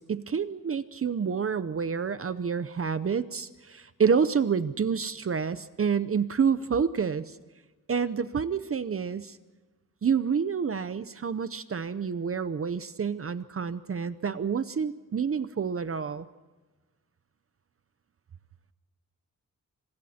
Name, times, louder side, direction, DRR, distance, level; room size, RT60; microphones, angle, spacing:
voice 1, 0.0-7.4 7.9-9.4 10.0-16.3, right 6 dB, 45° right, 13 dB, 0.7 m, -28 dB
29.5 x 26.0 x 4.3 m, 1.3 s
wide cardioid pair, 180°, 32 cm